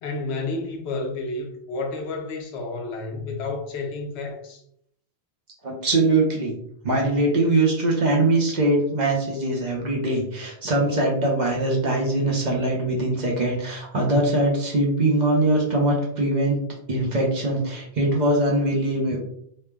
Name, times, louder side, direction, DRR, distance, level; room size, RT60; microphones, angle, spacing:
voice 1, 0.0-4.6, left 3 dB, 90° left, 0.9 m, -31 dB
voice 2, 5.6-6.5 6.8-16.6 16.9-19.2, right 2 dB, 50° right, 0.7 m, -22 dB
3.1 x 2.0 x 2.2 m
omnidirectional pair, 1.1 m